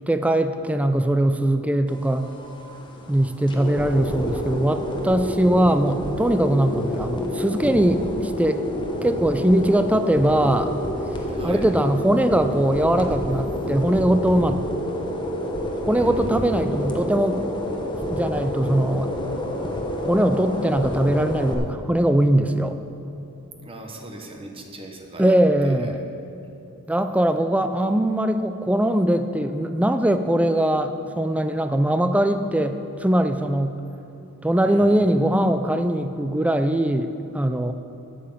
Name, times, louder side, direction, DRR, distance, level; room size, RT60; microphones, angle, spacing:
voice 1, 0.1-2.3 3.1-8.6 9.0-10.7 11.4-14.6 15.9-17.4 18.1-19.1 20.1-22.8 25.2-26.0 26.9-33.8 34.4-37.7, right 1 dB, 5° right, 9 dB, 0.4 m, -21 dB
sound 1, 1.9-21.5, left 1 dB, 20° left, 1.0 m, -29 dB
voice 2, 11.3-11.7 15.8-16.3 23.6-25.3 25.6-25.9 34.6-35.0, right 1 dB, 25° right, 2 dB, 1.1 m, -40 dB
8.6 x 7.7 x 7.3 m, 2.9 s
head